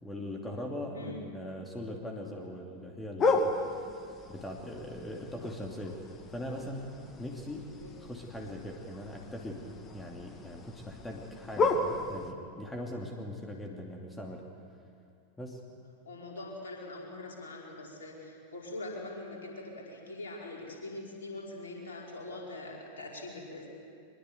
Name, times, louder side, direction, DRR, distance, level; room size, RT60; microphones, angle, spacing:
voice 1, 0.0-3.5 4.3-6.0 6.3-6.9 7.2-7.7 8.0-14.4 15.4-15.6, left 1 dB, 10° left, 0 dB, 2.7 m, -40 dB
sound 1, 3.2-12.3, left 3 dB, 25° left, 1.9 m, -34 dB
voice 2, 16.0-23.7, left 2 dB, 65° left, -2 dB, 5.2 m, -43 dB
23.5 x 22.0 x 8.1 m, 2.3 s
figure-of-eight pair, 90°, 0 cm